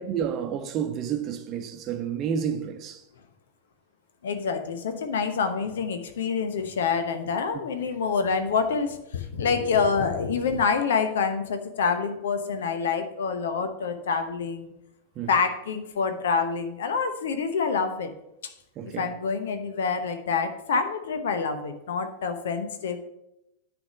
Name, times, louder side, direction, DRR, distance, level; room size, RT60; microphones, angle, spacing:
voice 1, 0.0-3.0 15.2-15.3 18.8-19.1, right 8 dB, 35° right, 0.9 m, -30 dB
voice 2, 4.2-14.7 15.3-18.1 18.4-18.5 19.0-23.0, left 5 dB, 60° left, 0.9 m, -27 dB
9.6 x 3.5 x 6.9 m
figure-of-eight pair, 90°, 0 cm